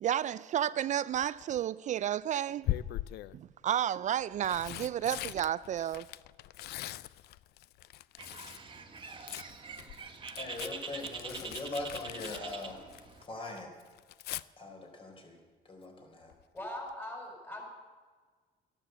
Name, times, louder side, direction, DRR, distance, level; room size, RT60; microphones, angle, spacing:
voice 1, 0.0-2.7 3.3-6.1, right 10 dB, 45° right, 0.4 m, -31 dB
Tearing, 1.1-1.6 2.6-3.4 4.2-8.7 9.0-13.3 13.6-14.4 16.3-16.6 16.9-17.0, left 15 dB, 75° left, 0.5 m, -41 dB
Bird, 8.2-13.2, right 5 dB, 30° right, 1.6 m, -44 dB
voice 2, 10.3-12.8 13.2-13.7 14.6-16.3, left 2 dB, 30° left, 4.2 m, -41 dB
voice 3, 16.5-17.7, left 1 dB, 10° left, 5.0 m, -41 dB
14.0 x 11.5 x 8.1 m
cardioid pair, 110°, 17 cm